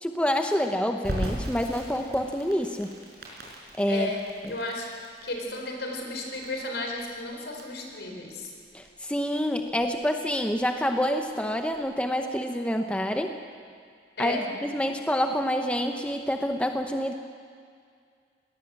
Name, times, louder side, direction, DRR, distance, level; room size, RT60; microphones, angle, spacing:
voice 1, 0.0-3.0 3.8-4.1 4.4-4.5 8.7-13.3 14.2-17.1, equal, 5° left, 5 dB, 0.8 m, -27 dB
Crackle, 1.0-11.8, equal, 65° right, 5.5 m, -40 dB
voice 2, 3.9-4.9 5.2-8.5 14.2-14.5, left 2 dB, 75° left, 1 dB, 4.5 m, -33 dB
21.5 x 18.5 x 7.7 m, 2.2 s
head